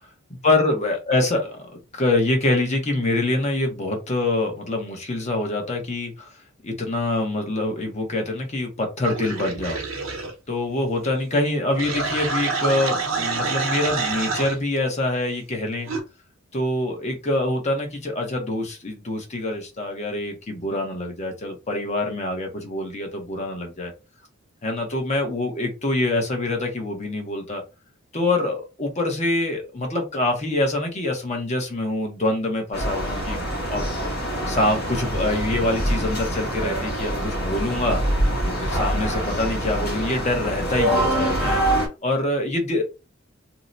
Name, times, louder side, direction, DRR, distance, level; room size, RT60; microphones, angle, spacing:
voice 1, 0.3-6.4 6.6-9.8 10.5-15.9 16.5-23.9 24.6-27.6 28.1-33.4 33.7-34.1 34.5-38.0 38.4-41.6 42.0-42.8, left 2 dB, 35° left, 3 dB, 0.9 m, -25 dB
sound 1, 9.0-10.3 11.7-14.6 15.9-16.0, right 4 dB, 80° right, 0.8 m, -27 dB
sound 2, 32.7-41.9, right 1 dB, 55° left, 1.2 m, -25 dB
2.8 x 2.1 x 3.8 m, 0.28 s
head